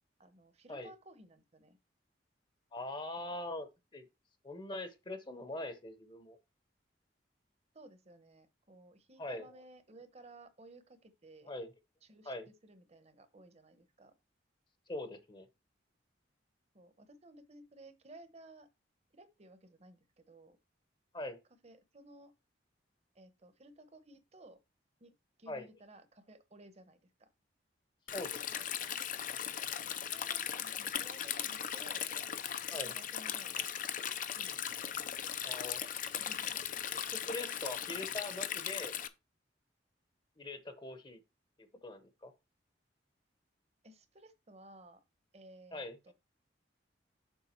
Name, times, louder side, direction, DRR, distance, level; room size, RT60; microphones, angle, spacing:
voice 1, 0.2-1.8 3.2-3.4 7.7-11.5 12.0-14.1 16.7-18.7 19.1-20.6 21.6-22.3 23.1-24.6 25.0-25.1 25.4-27.3 30.0-32.1 32.7-33.7 34.3-34.9 36.2-36.6 43.8-45.0 45.3-46.1, right 1 dB, 35° right, 1.0 m, -57 dB
voice 2, 2.7-3.7 3.9-4.0 4.4-6.4 9.2-9.6 11.5-11.7 12.3-12.5 14.9-15.5 21.1-21.4 25.5-25.7 28.1-28.7 32.7-32.9 35.4-35.8 37.1-38.9 40.4-41.2 41.6-42.3 45.7-46.1, left 2 dB, 25° left, 0.9 m, -42 dB
Stream, 28.1-39.1, left 9 dB, 45° left, 0.5 m, -38 dB
7.2 x 4.7 x 4.4 m
head